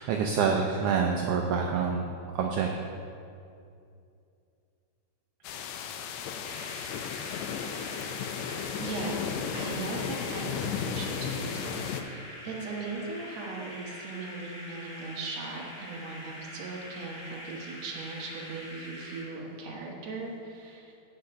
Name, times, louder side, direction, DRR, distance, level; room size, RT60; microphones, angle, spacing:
voice 1, 0.0-2.0 2.3-2.7, right 6 dB, 90° right, 1 dB, 1.3 m, -26 dB
sound 1, 5.4-12.0, left 7 dB, 80° left, 1.8 m, -34 dB
sound 2, 6.4-19.3, equal, 45° left, 3.0 m, -44 dB
voice 2, 8.5-20.9, right 3 dB, 65° right, -2 dB, 2.5 m, -39 dB
8.8 x 6.6 x 5.7 m, 2.5 s
omnidirectional pair, 3.5 m